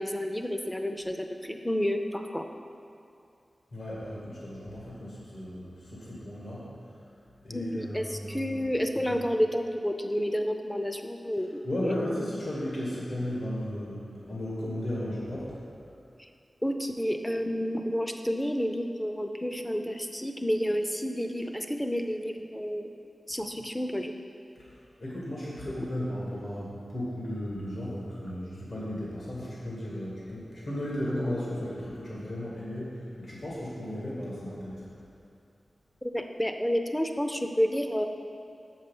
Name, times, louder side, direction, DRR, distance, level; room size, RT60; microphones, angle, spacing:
voice 1, 0.0-2.5 7.5-11.6 16.2-16.3 16.6-22.9 23.3-24.1 36.0-38.1, equal, 10° left, 5 dB, 0.5 m, -30 dB
voice 2, 3.7-6.7 7.4-8.6 9.0-9.2 11.6-15.5 24.6-34.9, left 1 dB, 65° left, -7 dB, 1.8 m, -35 dB
7.2 x 5.5 x 5.4 m, 2.5 s
wide cardioid pair, 75°, 0 cm